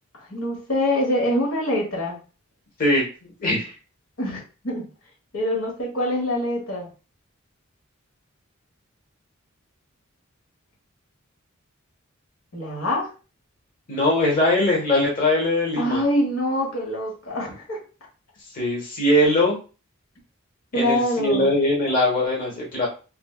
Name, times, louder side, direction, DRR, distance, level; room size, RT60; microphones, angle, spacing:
voice 1, 0.1-2.2 4.2-4.9 5.3-6.9 12.5-13.1 15.7-17.8 20.7-21.5, left 1 dB, 85° left, -2 dB, 1.3 m, -25 dB
voice 2, 2.8-3.7 13.9-16.0 18.5-19.6 20.7-22.9, left 1 dB, 45° left, -3 dB, 1.2 m, -21 dB
4.3 x 2.2 x 2.3 m, 0.34 s
head